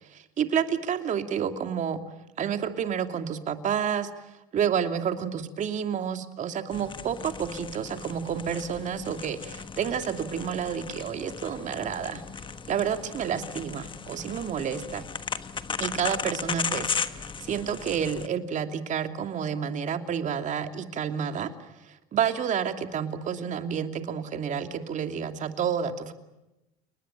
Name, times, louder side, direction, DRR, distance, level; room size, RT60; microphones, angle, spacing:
voice 1, 0.1-2.0 2.4-4.1 4.5-12.2 12.7-15.0 15.8-21.5 22.1-26.1, right 8 dB, 45° right, 7 dB, 2.7 m, -29 dB
sound 1, 6.7-18.3, left 6 dB, 30° left, 1.4 m, -36 dB
29.5 x 20.0 x 9.0 m, 0.96 s
supercardioid pair, 100°, 18 cm